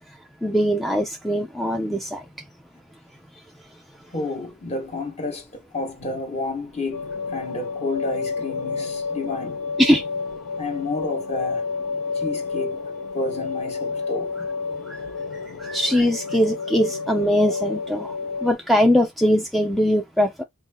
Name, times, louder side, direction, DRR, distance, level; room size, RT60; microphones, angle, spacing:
voice 1, 0.4-2.2 9.8-10.0 14.9-15.0 15.6-20.3, equal, ahead, 0.3 m, -21 dB
voice 2, 4.1-9.6 10.6-11.7 12.1-12.8 13.1-14.3, left 2 dB, 30° left, 1.0 m, -30 dB
sound 1, 6.9-18.5, left 4 dB, 75° left, 0.5 m, -30 dB
4.2 x 2.5 x 3.4 m
head